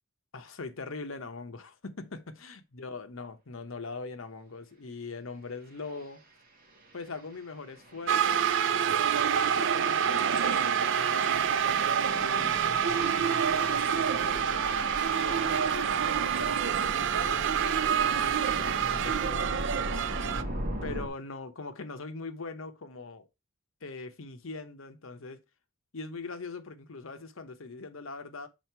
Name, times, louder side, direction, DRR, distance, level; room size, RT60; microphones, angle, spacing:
voice 1, 0.3-6.2 6.9-11.5 12.2-14.9 15.2-20.1 20.8-23.3 23.8-25.4 25.9-28.5, left 3 dB, 70° left, 0.9 m, -42 dB
sound 1, 5.8-6.1 6.6-21.1, right 1 dB, 40° right, 1.7 m, -40 dB
sound 2, 8.1-20.4, right 8 dB, 60° right, 0.5 m, -27 dB
6.3 x 4.1 x 4.5 m
head